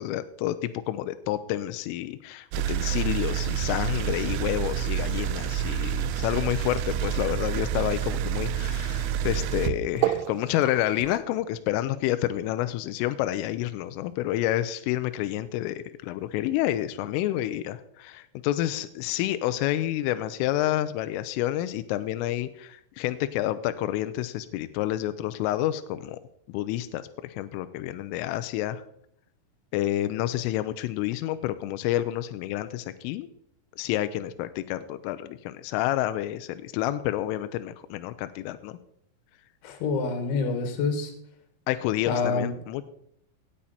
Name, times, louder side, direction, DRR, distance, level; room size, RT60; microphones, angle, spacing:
voice 1, 0.0-26.2 26.5-28.8 29.7-33.3 33.8-38.8 41.7-42.8, left 14 dB, 80° left, 11 dB, 3.2 m, -29 dB
sound 1, 2.5-11.2, right 10 dB, 80° right, 3.0 m, -28 dB
voice 2, 39.6-41.1 42.1-42.6, left 4 dB, 65° left, 6 dB, 4.0 m, -27 dB
17.0 x 9.0 x 4.3 m, 0.72 s
omnidirectional pair, 5.9 m